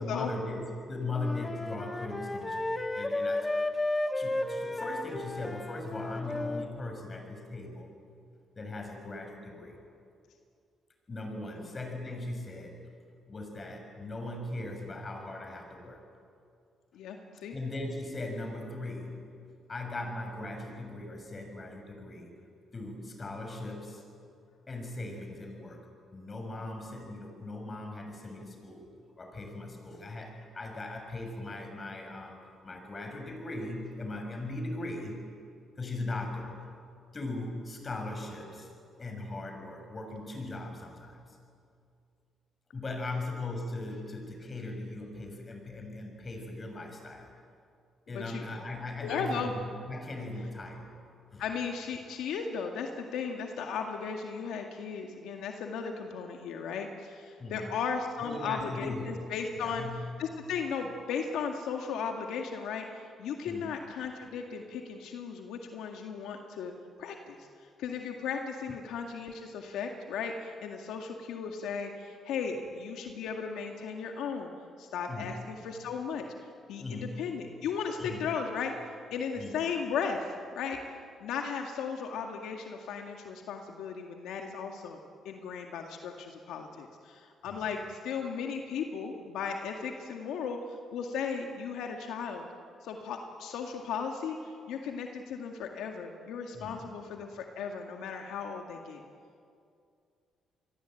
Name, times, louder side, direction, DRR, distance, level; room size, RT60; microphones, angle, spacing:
voice 1, 0.0-3.5 4.1-7.9 8.5-9.8 11.1-12.8 13.3-16.0 17.5-19.4 19.7-22.3 22.7-24.0 24.7-25.9 26.1-28.9 29.2-35.2 35.8-36.6 37.1-38.7 39.0-41.4 42.7-47.3 48.1-50.9 51.3-51.4 57.4-57.8 58.2-59.3 59.6-60.2 63.5-63.7 75.1-75.5 76.8-77.3 78.0-78.3 79.4-79.5 87.4-87.6 96.5-97.0, left 2 dB, 30° left, 4 dB, 6.6 m, -39 dB
Wind instrument woodwind instrument, 1.1-6.7, left 2 dB, 15° left, 1.9 m, -33 dB
voice 2, 16.9-17.5 48.1-48.4 49.0-49.5 51.4-66.7 67.0-74.5 74.8-76.3 76.7-78.7 79.1-80.8 81.2-85.0 85.2-92.5 92.8-99.0, left 6 dB, 85° left, 3 dB, 2.0 m, -36 dB
28.0 x 22.0 x 9.2 m, 2.4 s
cardioid pair, 90°, 0 cm